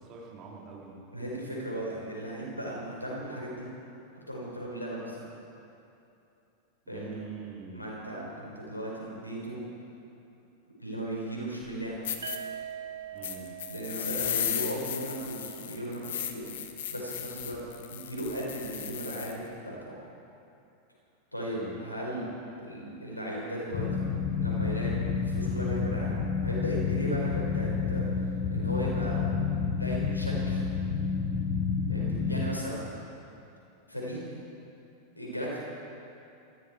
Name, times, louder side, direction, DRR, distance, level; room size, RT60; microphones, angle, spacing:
voice 1, 0.0-1.0 6.8-7.9 13.1-13.5 21.6-21.8 32.2-32.6, right 4 dB, 35° right, -2 dB, 3.3 m, -44 dB
voice 2, 1.1-3.7 4.3-5.2 6.9-7.2 7.7-9.6 10.8-12.1 13.7-16.4 16.9-17.6 17.9-20.0 21.3-22.3 22.6-24.1 24.4-26.2 26.4-28.0 28.5-29.2 29.8-30.6 31.9-32.8 33.9-34.2 35.1-35.6, right 1 dB, 85° left, -3 dB, 4.8 m, -36 dB
sound 1, 11.6-11.7 12.0-12.4 13.2-19.4, left 10 dB, 60° left, 1.2 m, -35 dB
sound 2, 12.2-16.1, right 8 dB, 70° right, 0.6 m, -43 dB
Drone Scifi hollow airy, 23.7-32.5, left 5 dB, 40° left, 1.3 m, -29 dB
20.5 x 15.0 x 4.6 m, 2.7 s
figure-of-eight pair, 90°, 0 cm